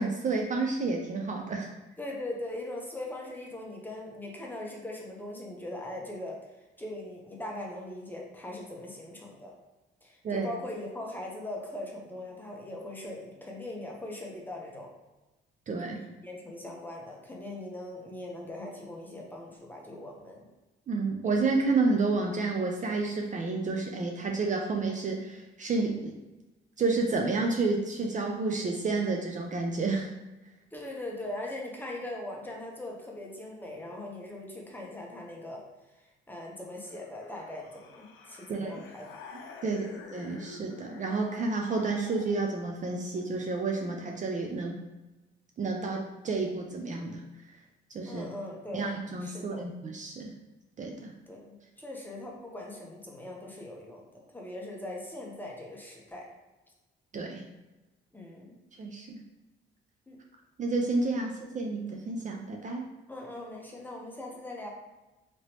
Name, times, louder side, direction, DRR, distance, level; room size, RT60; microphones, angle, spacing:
voice 1, 0.0-1.7 10.2-10.5 15.7-16.0 20.9-26.1 26.8-30.1 38.5-38.7 39.6-44.8 45.6-47.6 47.9-48.3 48.7-50.3 50.8-51.1 57.1-57.4 58.8-59.2 60.6-62.9, right 3 dB, 40° right, 1 dB, 0.4 m, -30 dB
voice 2, 2.0-6.4 6.8-9.5 10.0-14.9 16.2-20.5 30.7-35.6 36.0-39.2 39.6-40.0 48.0-48.9 49.2-49.7 51.3-56.2 58.1-58.6 60.1-60.2 63.1-64.7, left 1 dB, 10° left, -2 dB, 0.8 m, -40 dB
sound 1, 36.8-42.7, left 4 dB, 75° left, 0.5 m, -48 dB
2.9 x 2.9 x 2.9 m, 1.1 s
cardioid pair, 90°, 20 cm